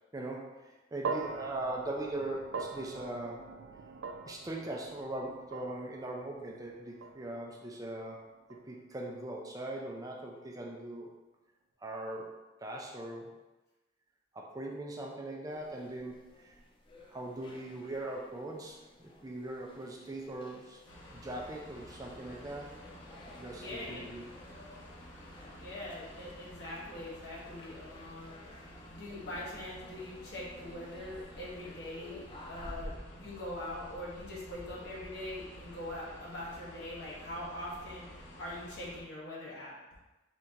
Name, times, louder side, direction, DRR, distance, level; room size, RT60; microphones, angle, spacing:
voice 1, 0.1-3.5 4.3-11.1 11.8-13.3 14.3-16.6 17.1-20.8 21.1-22.8 23.4-24.2, right 1 dB, 20° right, -1 dB, 0.5 m, -40 dB
sound 1, 1.0-9.4, right 4 dB, 75° right, 0.4 m, -43 dB
sound 2, 15.5-32.8, left 1 dB, 25° left, 0.5 m, -55 dB
sound 3, 20.9-39.0, equal, 80° left, 0.9 m, -50 dB
voice 2, 23.5-24.0 25.6-28.4 28.9-32.2 32.5-38.0 38.4-39.8, left 1 dB, 65° left, -6 dB, 1.5 m, -42 dB
4.4 x 2.9 x 3.8 m, 1.1 s
head